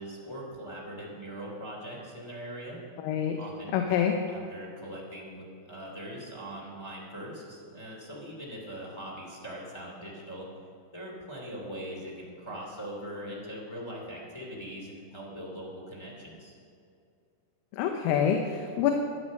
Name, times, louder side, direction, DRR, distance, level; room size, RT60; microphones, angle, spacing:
voice 1, 0.0-2.8 3.4-3.8 4.3-10.5 10.9-16.5, equal, 10° left, -4 dB, 1.2 m, -41 dB
voice 2, 3.0-3.4 3.7-4.2 17.7-18.9, left 8 dB, 85° left, 4 dB, 3.5 m, -26 dB
13.5 x 11.5 x 6.5 m, 2.4 s
omnidirectional pair, 5.8 m